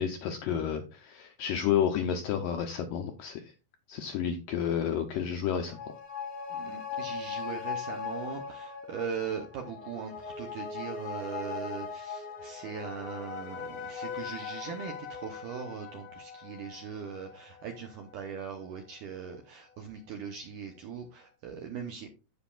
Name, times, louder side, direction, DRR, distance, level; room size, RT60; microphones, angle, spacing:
voice 1, 0.0-3.5 3.9-5.8, left 9 dB, 80° left, 6 dB, 1.9 m, -30 dB
sound 1, 5.4-18.3 18.6-18.7, left 6 dB, 60° left, 1.5 m, -40 dB
voice 2, 6.5-22.1, right 7 dB, 80° right, 4 dB, 1.8 m, -40 dB
15.0 x 5.2 x 2.4 m, 0.31 s
omnidirectional pair, 4.7 m